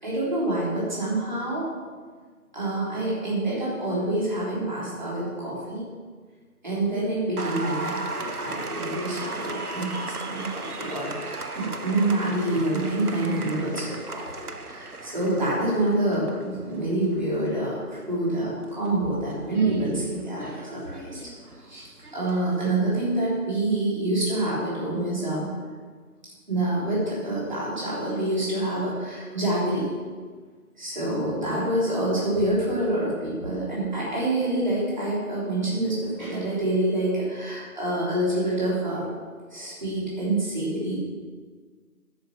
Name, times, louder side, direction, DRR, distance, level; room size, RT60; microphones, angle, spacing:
voice 1, 0.0-1.7 2.5-5.9 6.6-17.8 18.1-21.2 21.7-25.5 26.5-29.9 30.8-39.0 39.5-41.0, right 1 dB, 30° right, -7 dB, 3.4 m, -27 dB
Applause, 7.4-22.7, right 3 dB, 80° right, 1.1 m, -37 dB
12.5 x 5.2 x 7.6 m, 1.5 s
figure-of-eight pair, 170°, 45 cm